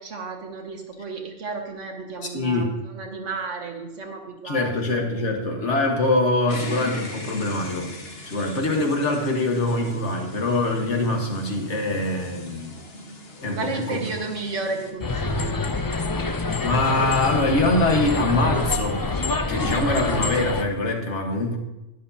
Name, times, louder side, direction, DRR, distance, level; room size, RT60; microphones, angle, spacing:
voice 1, 0.0-4.7 13.5-15.6, right 3 dB, 80° right, 2 dB, 1.7 m, -32 dB
voice 2, 2.3-2.7 4.4-7.9 8.2-12.8 13.4-14.0 16.6-19.0 19.5-21.6, left 2 dB, 75° left, 2 dB, 1.8 m, -24 dB
sound 1, 6.5-14.9, left 1 dB, 55° left, 1.5 m, -39 dB
sound 2, 15.0-20.6, left 3 dB, 35° left, 0.3 m, -26 dB
12.0 x 10.5 x 2.8 m, 0.96 s
omnidirectional pair, 1.2 m